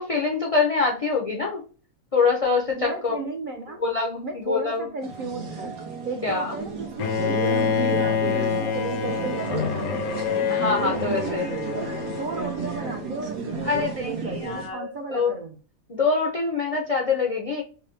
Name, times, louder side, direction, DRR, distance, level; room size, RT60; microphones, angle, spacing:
voice 1, 0.0-1.6 2.1-3.2 3.8-4.9 6.2-6.5 10.5-11.5 13.6-15.3 15.9-17.6, left 4 dB, 65° left, -1 dB, 0.3 m, -25 dB
voice 2, 2.8-3.8 4.2-5.8 6.0-10.3 10.8-15.6, right 2 dB, 70° right, 3 dB, 0.4 m, -34 dB
sound 1, 5.0-14.7, right 6 dB, 85° right, 1.5 m, -33 dB
Bowed string instrument, 7.0-13.1, left 7 dB, 85° left, 1.1 m, -27 dB
5.6 x 2.0 x 2.6 m, 0.39 s
omnidirectional pair, 1.5 m